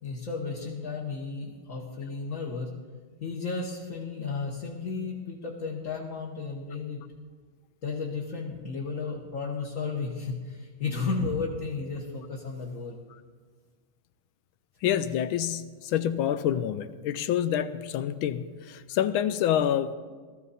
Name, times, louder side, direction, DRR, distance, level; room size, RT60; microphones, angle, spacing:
voice 1, 0.0-2.7 3.2-7.0 7.8-13.0, left 4 dB, 45° left, -2 dB, 1.4 m, -33 dB
voice 2, 14.8-20.0, left 10 dB, 80° left, 12 dB, 1.3 m, -27 dB
18.0 x 13.5 x 4.2 m, 1.5 s
omnidirectional pair, 2.3 m